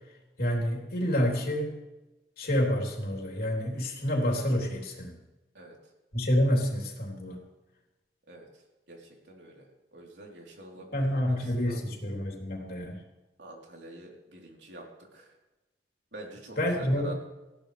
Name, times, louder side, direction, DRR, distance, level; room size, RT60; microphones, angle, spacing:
voice 1, 0.4-1.7 2.4-5.2 6.1-7.4 10.9-13.0 16.6-17.1, equal, 55° left, 0 dB, 3.6 m, -28 dB
voice 2, 8.9-11.8 13.4-15.3 16.1-17.1, right 1 dB, 70° right, -1 dB, 3.9 m, -46 dB
20.0 x 16.0 x 3.4 m, 1.1 s
head